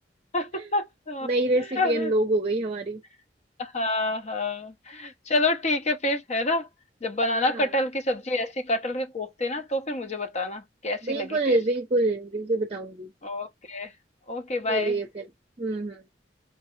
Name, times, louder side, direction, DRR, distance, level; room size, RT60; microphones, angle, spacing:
voice 1, 0.3-1.3 1.8-2.1 3.6-6.7 7.0-11.6 13.2-13.9 14.3-15.0, left 2 dB, 40° left, 0.8 m, -28 dB
voice 2, 1.2-3.0 7.3-7.7 11.0-13.1 14.7-15.3 15.6-16.1, right 2 dB, 35° right, 0.6 m, -26 dB
4.6 x 2.1 x 3.1 m
head